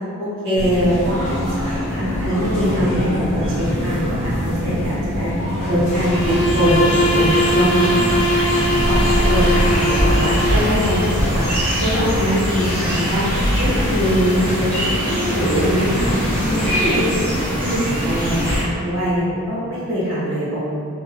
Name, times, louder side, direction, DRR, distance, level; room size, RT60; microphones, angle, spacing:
voice 1, 0.2-9.0 9.3-11.5 11.8-13.3 13.6-16.2 16.4-20.6, equal, 60° right, -9 dB, 0.9 m, -22 dB
sound 1, 0.6-18.6, equal, 35° left, 0.8 m, -23 dB
sound 2, 5.8-18.6, equal, 5° left, 0.7 m, -27 dB
Bowed string instrument, 6.0-10.9, equal, 70° left, 0.4 m, -21 dB
2.7 x 2.2 x 2.5 m, 2.4 s
head